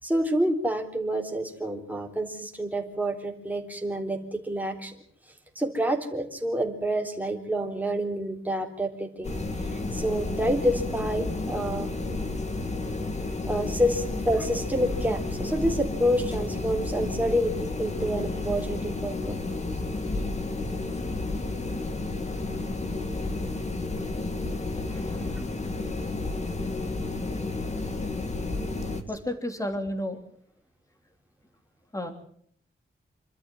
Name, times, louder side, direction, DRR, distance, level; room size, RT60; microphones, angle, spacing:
voice 1, 0.0-5.0 5.6-9.3 9.7-11.9 13.4-19.4, equal, 10° right, 1 dB, 3.6 m, -28 dB
sound 1, 9.2-29.0, left 2 dB, 35° left, 2.3 m, -31 dB
voice 2, 24.9-25.7 29.1-30.2 31.9-32.1, left 1 dB, 15° left, 5 dB, 3.1 m, -33 dB
27.0 x 13.0 x 9.2 m, 0.64 s
wide cardioid pair, 145°, 21 cm